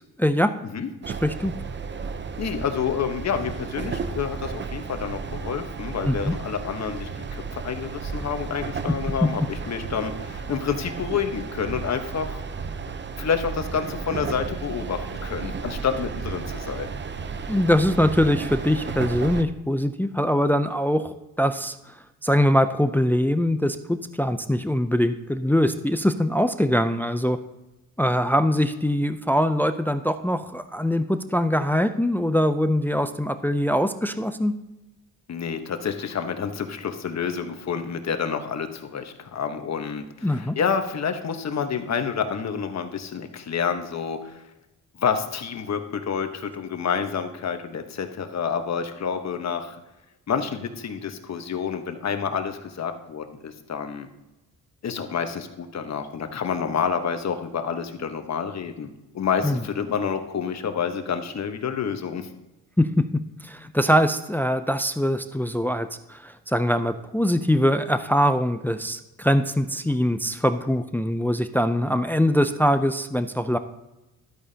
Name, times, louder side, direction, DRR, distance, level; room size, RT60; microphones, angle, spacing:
voice 1, 0.2-0.5 1.2-1.5 6.1-6.3 17.5-21.9 22.2-27.4 28.0-34.5 40.2-40.6 59.4-59.6 62.8-73.6, equal, 5° left, 10 dB, 0.4 m, -23 dB
sound 1, 1.0-19.4, right 5 dB, 30° right, 0.7 m, -33 dB
voice 2, 2.4-12.4 13.2-16.9 35.3-44.4 45.0-49.8 50.3-54.1 54.8-62.3, left 6 dB, 45° left, 7 dB, 1.2 m, -28 dB
12.5 x 8.8 x 2.8 m, 1.0 s
cardioid pair, 95°, 37 cm